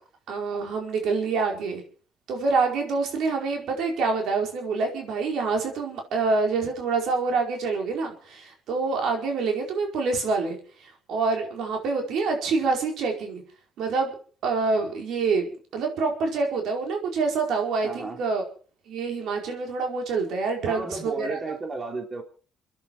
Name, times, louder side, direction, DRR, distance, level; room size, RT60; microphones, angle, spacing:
voice 1, 0.3-1.8 2.3-10.6 11.1-13.4 13.8-14.1 14.4-18.4 18.9-21.4, right 4 dB, 80° right, 3 dB, 4.9 m, -26 dB
voice 2, 17.8-18.2 20.6-22.2, right 3 dB, 30° right, 4 dB, 3.1 m, -33 dB
27.5 x 10.5 x 4.9 m, 0.41 s
cardioid pair, 90°, 0 cm